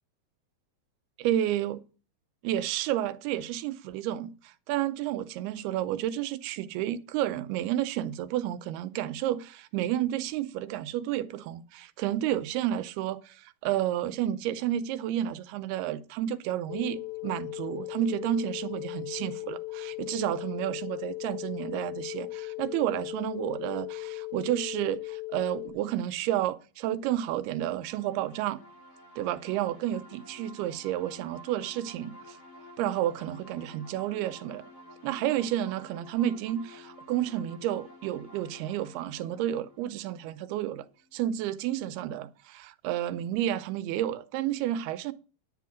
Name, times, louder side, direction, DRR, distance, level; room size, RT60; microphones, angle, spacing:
voice 1, 1.2-1.8 2.4-28.6 29.2-32.4 32.8-34.6 35.0-40.9 41.1-45.1, right 12 dB, 90° right, 2.7 m, -31 dB
sound 1, 16.7-25.7, left 20 dB, 75° left, 2.0 m, -38 dB
sound 2, 27.7-41.2, left 1 dB, 40° left, 3.7 m, -51 dB
10.0 x 9.3 x 4.9 m
omnidirectional pair, 4.4 m